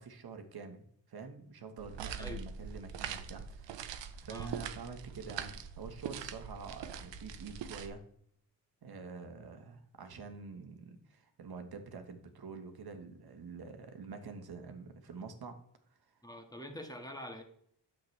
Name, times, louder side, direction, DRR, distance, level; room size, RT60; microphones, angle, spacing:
voice 1, 0.0-8.0 8.8-15.6, right 5 dB, 60° right, 6 dB, 1.5 m, -47 dB
sound 1, 1.8-7.9, right 7 dB, 80° right, 0.8 m, -43 dB
voice 2, 16.2-17.4, equal, 10° left, 4 dB, 1.8 m, -45 dB
9.2 x 7.2 x 3.3 m, 0.68 s
cardioid pair, 65°, 43 cm